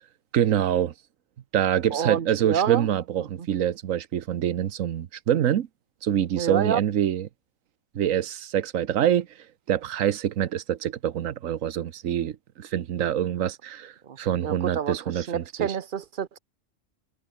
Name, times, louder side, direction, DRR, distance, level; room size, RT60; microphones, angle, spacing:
voice 1, 0.3-0.9 1.5-5.7 6.0-7.3 7.9-9.3 9.7-15.7, right 10 dB, 90° right, 1.2 m, -25 dB
voice 2, 1.9-2.9 3.2-3.5 6.3-6.8 14.1-14.2 14.4-16.4, right 8 dB, 45° right, 0.9 m, -28 dB
omnidirectional pair, 1.3 m